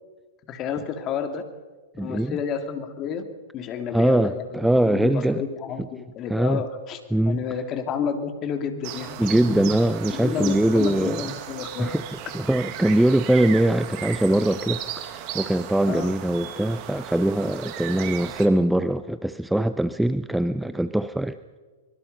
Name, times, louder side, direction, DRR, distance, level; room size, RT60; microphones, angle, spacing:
voice 1, 0.5-1.4 2.0-3.3 3.5-9.6 10.1-11.9 15.9-16.1 18.0-18.1, left 7 dB, 35° left, 7 dB, 2.9 m, -30 dB
voice 2, 2.0-2.4 3.9-5.4 6.3-6.6 7.1-7.4 9.2-11.3 11.8-12.0 12.3-21.4, right 1 dB, 5° right, 13 dB, 0.7 m, -22 dB
sound 1, 8.8-18.5, right 11 dB, 45° right, 2.3 m, -36 dB
24.0 x 23.0 x 5.6 m, 1.3 s
hypercardioid pair, 110°, 0 cm